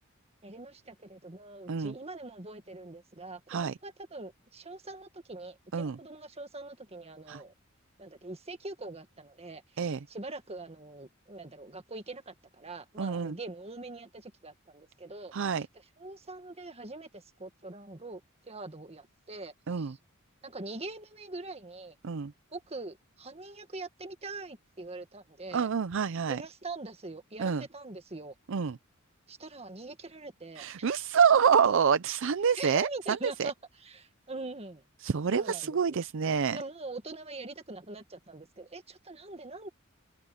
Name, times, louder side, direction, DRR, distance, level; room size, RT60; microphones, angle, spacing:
voice 1, 0.4-7.5 8.0-15.3 16.0-18.2 18.5-20.0 20.4-22.0 22.5-25.7 26.3-28.3 29.3-30.9 32.6-34.8 35.3-36.0 36.5-39.7, right 2 dB, 30° right, 1.8 m, -43 dB
voice 2, 13.0-13.4 15.3-15.7 19.7-19.9 22.0-22.3 25.5-26.4 27.4-27.6 28.5-28.8 30.6-33.5 35.0-36.6, right 6 dB, 65° right, 0.5 m, -27 dB
head